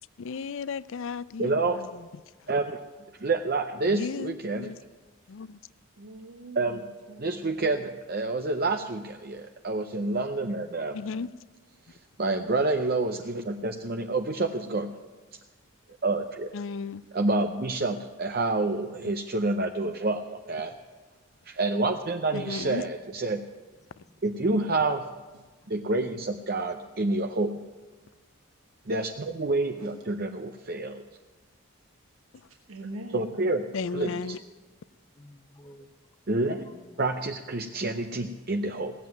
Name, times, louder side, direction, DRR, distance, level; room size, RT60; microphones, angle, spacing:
voice 1, 0.2-1.9 3.9-4.8 5.3-5.6 10.9-11.3 16.5-17.0 22.3-22.8 33.7-34.4, left 5 dB, 60° left, 0.4 m, -34 dB
voice 2, 1.4-1.8 2.5-2.8 3.2-4.7 6.6-6.8 7.2-11.0 11.9-14.9 16.0-16.5 17.1-20.7 21.4-23.4 24.2-25.0 25.7-27.6 28.9-31.0 33.1-33.6 33.9-34.4 36.3-36.7 37.0-38.9, right 2 dB, 45° right, 0.6 m, -28 dB
voice 3, 6.0-7.8 25.3-25.4 29.7-30.0 32.7-33.3, right 1 dB, 85° right, 1.2 m, -43 dB
voice 4, 35.1-35.9 36.3-37.0 37.8-38.0, left 1 dB, 15° left, 0.7 m, -54 dB
17.0 x 7.8 x 9.3 m
head